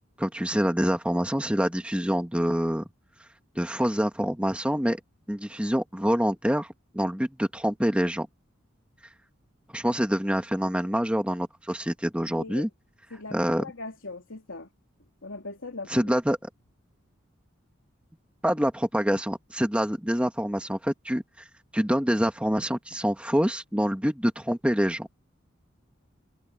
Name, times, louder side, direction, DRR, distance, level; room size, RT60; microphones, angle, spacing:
voice 1, 0.2-2.8 3.6-5.0 5.3-8.3 9.7-12.7 13.3-13.7 15.9-16.5 18.4-21.2 21.7-25.1, equal, 5° right, 1.9 m, -26 dB
voice 2, 13.1-14.7 15.2-16.1, left 3 dB, 85° left, 3.0 m, -40 dB
head